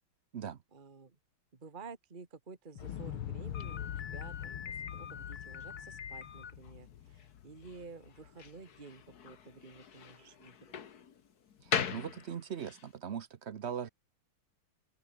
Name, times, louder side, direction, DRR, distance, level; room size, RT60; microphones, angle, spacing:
voice 1, 0.7-1.2 1.5-10.6, right 4 dB, 25° right, 1.7 m, -52 dB
Explosion, 2.8-8.8 9.1-9.2, left 11 dB, 75° left, 2.0 m, -44 dB
Slam, 3.5-12.9, left 7 dB, 50° left, 1.8 m, -41 dB
voice 2, 11.6-13.9, right 8 dB, 70° right, 0.6 m, -40 dB
omnidirectional pair, 2.4 m